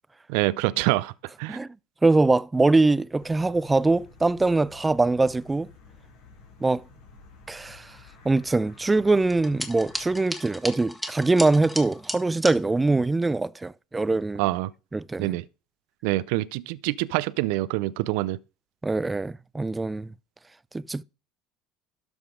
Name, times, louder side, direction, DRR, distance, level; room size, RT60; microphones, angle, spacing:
voice 1, 0.3-1.1 1.4-1.6 14.4-14.7 15.2-15.4 16.0-18.4, right 19 dB, 75° right, 0.4 m, -25 dB
voice 2, 2.0-5.7 6.6-6.8 7.5-7.9 8.2-14.4 14.9-15.3 18.8-20.1 20.7-21.0, right 3 dB, 15° right, 0.4 m, -23 dB
sound 1, 3.2-10.2, left 4 dB, 80° left, 3.8 m, -51 dB
sound 2, 9.3-12.6, equal, 5° left, 1.6 m, -35 dB
12.5 x 5.2 x 5.0 m
hypercardioid pair, 80°, 0 cm